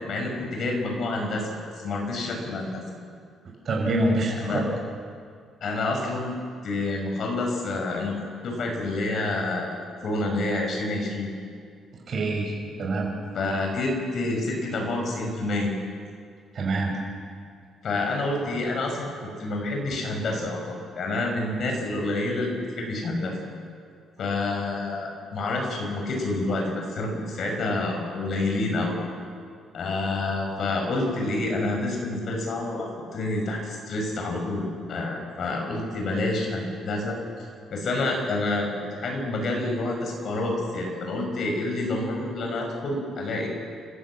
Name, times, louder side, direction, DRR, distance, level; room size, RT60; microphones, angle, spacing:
voice 1, 0.1-2.8 4.4-4.6 5.6-6.3 6.6-8.1 8.4-9.7 10.0-11.3 13.3-15.7 17.8-19.1 19.4-23.3 24.2-28.9 29.7-37.2 37.7-38.7 39.0-43.5, left 2 dB, 50° left, 2 dB, 6.1 m, -28 dB
voice 2, 3.7-4.7 12.1-12.5 12.8-13.1 16.5-16.9, right 2 dB, 45° right, 0 dB, 5.9 m, -25 dB
30.0 x 14.5 x 7.7 m, 2.2 s
cardioid pair, 135°, 0 cm